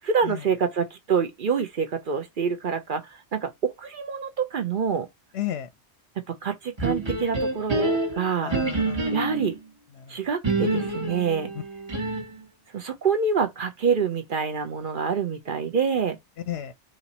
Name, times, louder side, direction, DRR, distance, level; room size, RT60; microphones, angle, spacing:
voice 1, 0.0-5.1 6.3-8.5 9.1-9.6 10.1-11.5 12.7-16.2, right 6 dB, 50° right, 0.7 m, -26 dB
voice 2, 5.3-5.7 8.4-9.4 10.0-10.1 11.9-12.1 16.5-16.7, left 11 dB, 65° left, 0.8 m, -33 dB
sound 1, 6.8-9.6 10.4-12.4, right 2 dB, 25° right, 0.9 m, -27 dB
4.2 x 2.7 x 4.0 m
omnidirectional pair, 1.3 m